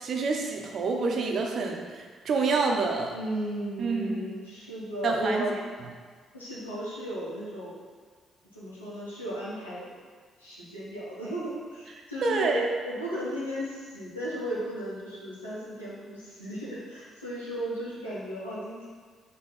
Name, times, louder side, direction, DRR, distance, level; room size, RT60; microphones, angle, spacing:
voice 1, 0.0-3.1 3.8-4.2 5.0-5.4 12.2-12.6, right 4 dB, 55° right, 2 dB, 0.8 m, -27 dB
voice 2, 3.1-5.6 6.3-7.8 8.5-9.9 10.4-18.8, right 1 dB, 90° left, -10 dB, 1.2 m, -35 dB
5.5 x 3.1 x 5.6 m, 1.5 s
figure-of-eight pair, 45°, 0 cm